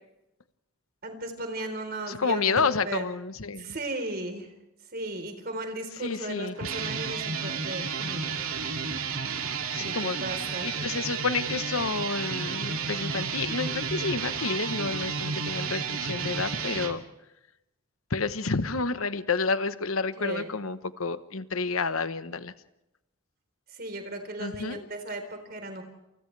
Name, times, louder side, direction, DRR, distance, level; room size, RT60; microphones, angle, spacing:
voice 1, 1.0-3.0 3.5-4.5 4.9-8.4 9.8-10.8 20.2-20.5 23.7-25.8, right 1 dB, 45° right, 6 dB, 4.0 m, -36 dB
voice 2, 2.1-3.7 6.0-6.5 9.7-17.0 18.1-22.5 24.4-24.8, left 4 dB, 80° left, 12 dB, 1.1 m, -30 dB
sound 1, 6.5-16.9, right 5 dB, 80° right, 2.5 m, -32 dB
28.5 x 28.0 x 3.4 m, 0.93 s
head